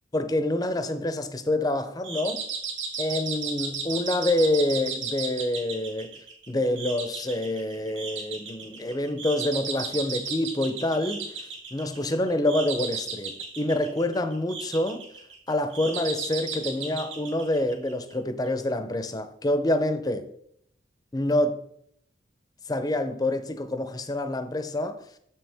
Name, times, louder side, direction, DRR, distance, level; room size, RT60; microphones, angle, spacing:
voice 1, 0.1-2.4 3.0-6.1 6.5-11.3 11.7-15.0 15.5-20.3 21.1-21.6 22.7-25.0, left 1 dB, 20° left, 0.5 m, -27 dB
sound 1, 2.0-18.1, right 4 dB, 90° right, 1.4 m, -35 dB
6.6 x 6.2 x 3.4 m
head